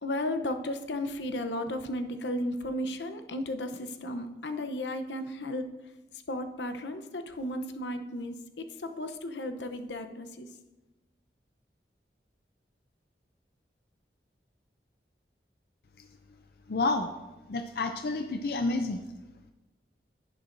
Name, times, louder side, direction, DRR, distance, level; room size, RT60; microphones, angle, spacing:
voice 1, 0.0-5.7 6.3-10.5, left 1 dB, 85° left, 8 dB, 0.8 m, -34 dB
voice 2, 16.7-17.1 17.5-19.0, left 3 dB, 60° left, 7 dB, 0.5 m, -29 dB
11.0 x 10.5 x 2.6 m, 1.0 s
head